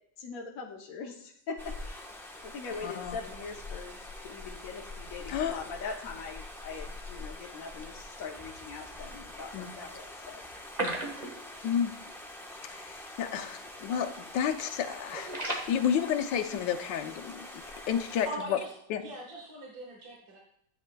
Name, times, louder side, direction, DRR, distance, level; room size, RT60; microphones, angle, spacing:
voice 1, 0.2-2.0 2.4-10.4, left 4 dB, 60° left, 0 dB, 1.1 m, -42 dB
sound 1, 1.6-18.3, left 2 dB, ahead, 0.6 m, -45 dB
voice 2, 2.8-3.2 5.3-5.6 9.5-9.7 10.8-11.0 11.6-11.9 12.7-18.6 18.9-19.0, left 8 dB, 90° left, 7 dB, 1.4 m, -31 dB
sound 2, 10.5-11.8 12.0-12.2 12.5-12.6 13.2-13.5 13.8-14.1 14.5-15.7, right 2 dB, 25° right, 1.3 m, -35 dB
voice 3, 18.3-20.4, right 2 dB, 60° right, -1 dB, 2.0 m, -42 dB
13.0 x 8.5 x 2.2 m, 0.73 s
omnidirectional pair, 1.9 m